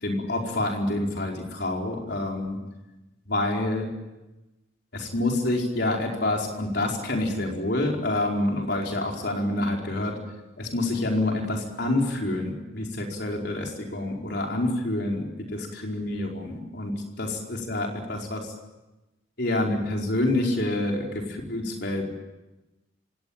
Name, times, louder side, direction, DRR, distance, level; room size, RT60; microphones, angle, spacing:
voice 1, 0.0-2.6 3.3-3.9 4.9-10.1 10.6-16.9 17.2-18.4 19.4-22.1, left 1 dB, 55° left, 1 dB, 4.9 m, -27 dB
26.5 x 18.0 x 9.0 m, 1.1 s
head